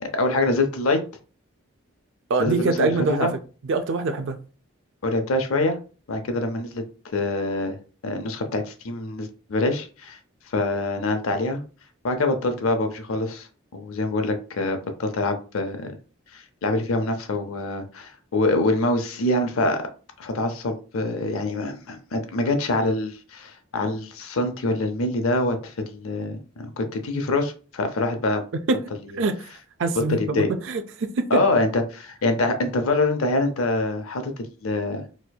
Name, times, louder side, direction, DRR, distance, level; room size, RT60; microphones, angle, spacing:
voice 1, 0.0-1.0 2.4-3.3 5.0-5.8 6.1-6.8 7.1-7.8 8.0-10.2 10.5-11.6 12.0-13.5 13.7-15.9 16.3-19.8 20.2-26.4 26.8-28.4 29.0-29.2 30.0-30.5 31.3-34.3 34.6-35.0, left 2 dB, 85° left, 0.6 m, -25 dB
voice 2, 2.3-3.3 3.7-4.4 28.5-28.8 29.2-29.4 29.8-31.3, right 3 dB, 60° right, 0.4 m, -24 dB
4.2 x 2.6 x 2.3 m
head